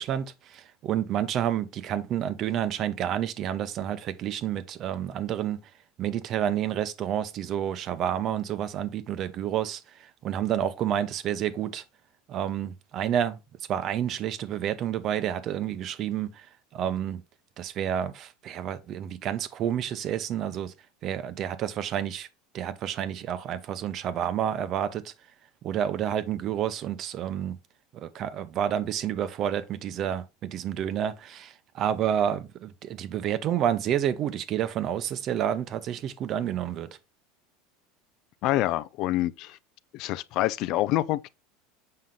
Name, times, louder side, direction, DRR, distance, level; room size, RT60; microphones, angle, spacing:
voice 1, 0.0-5.6 6.0-11.8 12.3-13.4 13.7-16.5 16.7-17.2 17.6-20.7 21.0-22.3 22.5-25.1 25.6-27.6 27.9-36.9, right 10 dB, 40° right, 0.8 m, -29 dB
voice 2, 38.4-39.6 39.9-41.3, left 15 dB, 50° left, 0.4 m, -26 dB
7.7 x 5.7 x 3.7 m
supercardioid pair, 145°, 0 cm